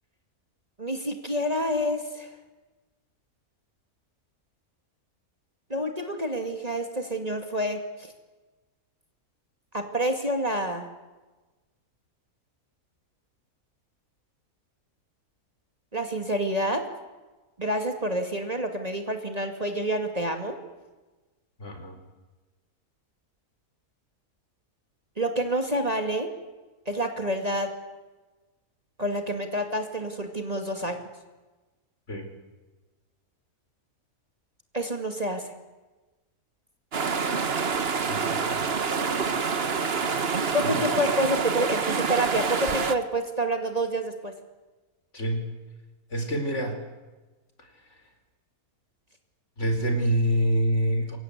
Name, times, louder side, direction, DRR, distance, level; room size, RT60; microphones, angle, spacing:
voice 1, 0.8-2.3 5.7-8.1 9.7-10.9 15.9-16.8 17.6-20.6 25.2-26.3 26.9-27.7 29.0-31.0 34.7-35.5 40.4-44.3, right 1 dB, 25° right, 5 dB, 2.5 m, -28 dB
voice 2, 21.6-22.0 32.1-32.3 38.1-38.6 40.3-40.8 45.1-45.5 46.1-46.8 49.6-51.2, right 1 dB, 50° left, 5 dB, 4.8 m, -27 dB
sound 1, 36.9-42.9, right 5 dB, 45° right, 1.5 m, -27 dB
28.0 x 24.0 x 8.3 m, 1.2 s
omnidirectional pair, 1.6 m